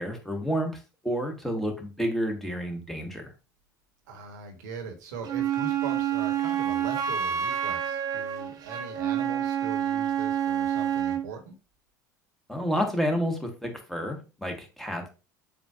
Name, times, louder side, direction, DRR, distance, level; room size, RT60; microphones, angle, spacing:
voice 1, 0.0-3.3 12.5-15.1, equal, 5° left, 3 dB, 1.3 m, -30 dB
voice 2, 4.1-11.6, right 4 dB, 65° right, 2 dB, 1.3 m, -41 dB
Wind instrument woodwind instrument, 5.2-11.3, right 9 dB, 40° right, 0.8 m, -28 dB
7.2 x 2.5 x 2.4 m, 0.32 s
figure-of-eight pair, 70°, 10 cm